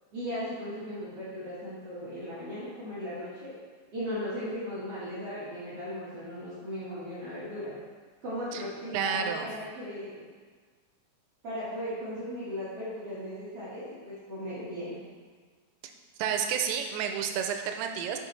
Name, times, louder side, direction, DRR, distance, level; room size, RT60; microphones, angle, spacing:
voice 1, 0.1-3.5 3.9-7.7 8.2-10.2 11.4-15.0, equal, 60° right, -11 dB, 1.5 m, -37 dB
voice 2, 8.9-9.5 16.2-18.2, right 7 dB, 85° right, 5 dB, 2.9 m, -30 dB
7.5 x 6.3 x 3.2 m, 1.5 s
omnidirectional pair, 5.1 m